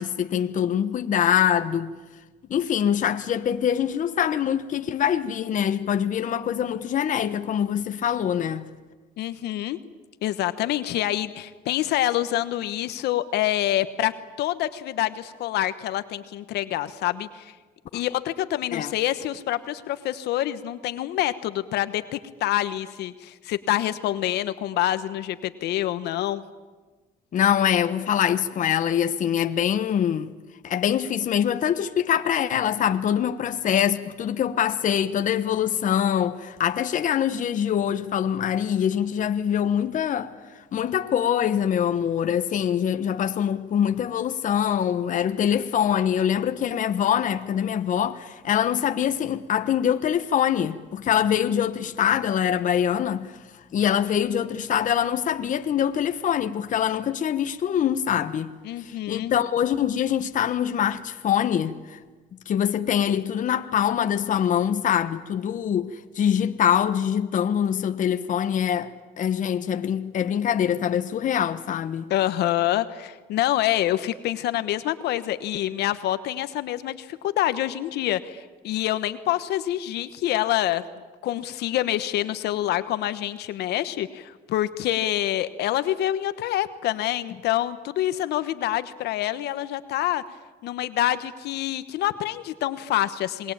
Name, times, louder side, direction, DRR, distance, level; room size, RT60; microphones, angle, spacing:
voice 1, 0.0-1.9 2.5-8.6 17.9-18.0 18.7-18.9 27.3-30.3 30.6-40.3 40.7-53.3 53.7-58.5 58.8-62.0 62.5-72.1, left 9 dB, 50° left, 1.2 m, -24 dB
voice 2, 9.2-9.8 10.2-14.1 14.4-17.5 17.9-26.4 58.6-59.3 72.1-80.8 81.2-90.2 90.6-93.5, left 13 dB, 75° left, 1.2 m, -26 dB
27.0 x 21.0 x 8.8 m
cardioid pair, 110°, 17 cm